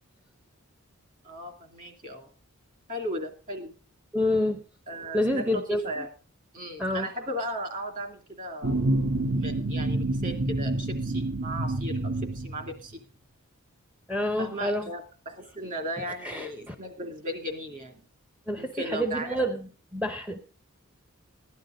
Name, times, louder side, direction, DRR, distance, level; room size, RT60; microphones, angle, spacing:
voice 1, 1.2-2.3 2.9-3.7 4.9-6.1 6.5-8.7 9.4-13.0 14.4-15.0 15.3-18.0 18.5-19.5, equal, 35° right, 4 dB, 2.5 m, -36 dB
voice 2, 4.1-4.6 5.1-5.8 6.8-7.1 14.1-14.9 16.2-16.8 18.5-20.4, left 1 dB, 5° right, 7 dB, 0.6 m, -28 dB
sound 1, 8.6-12.9, right 2 dB, 60° right, 1.1 m, -28 dB
16.0 x 11.0 x 3.8 m, 0.37 s
head